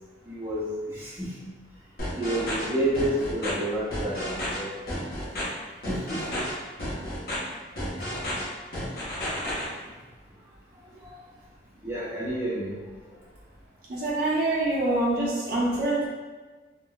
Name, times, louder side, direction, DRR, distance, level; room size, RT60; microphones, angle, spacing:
voice 1, 0.3-1.3 2.2-4.7 5.9-6.4 8.0-8.3 11.0-11.1 11.8-12.8, right 1 dB, 10° right, -11 dB, 0.7 m, -30 dB
sound 1, 2.0-2.7 2.9-3.5 3.9-4.6 4.9-5.4 5.8-6.5 6.8-7.4 7.8-8.4 8.7-9.6, left 1 dB, 55° left, 0.8 m, -32 dB
voice 2, 13.9-16.1, right 2 dB, 55° right, -7 dB, 0.7 m, -25 dB
3.6 x 2.1 x 2.2 m, 1.3 s
head